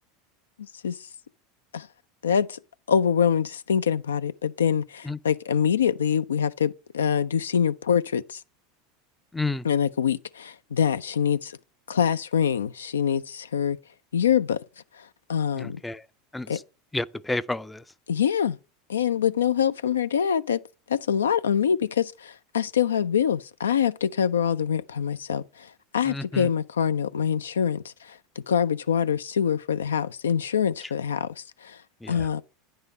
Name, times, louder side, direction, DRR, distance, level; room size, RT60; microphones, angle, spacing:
voice 1, 0.6-1.0 1.7-1.9 2.2-2.6 2.9-8.4 9.6-11.5 11.9-13.8 14.1-14.6 15.3-15.8 16.5-16.6 18.1-18.6 18.9-20.6 20.9-25.4 25.9-27.9 28.5-31.8 32.1-32.4, left 8 dB, 85° left, 0.3 m, -24 dB
voice 2, 9.3-9.6 15.5-16.1 16.3-16.6 16.9-17.8 26.0-26.5 32.0-32.4, left 2 dB, 10° left, 0.4 m, -31 dB
9.5 x 3.7 x 6.5 m
hypercardioid pair, 85°, 0 cm